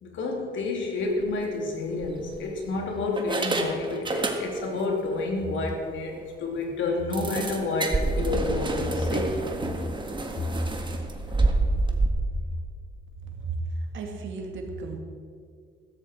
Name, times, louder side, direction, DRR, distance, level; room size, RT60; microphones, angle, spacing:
voice 1, 0.0-9.3, left 3 dB, 75° left, 0 dB, 3.1 m, -29 dB
sound 1, 1.1-1.3 2.0-2.7 3.2-4.8 5.1-5.3 5.7-5.8 6.1-6.2 7.1-12.1, right 2 dB, 25° right, 1.7 m, -28 dB
voice 2, 13.2-15.0, right 3 dB, 75° right, 2 dB, 2.4 m, -34 dB
15.0 x 13.5 x 4.6 m, 2.2 s
cardioid pair, 90°, 20 cm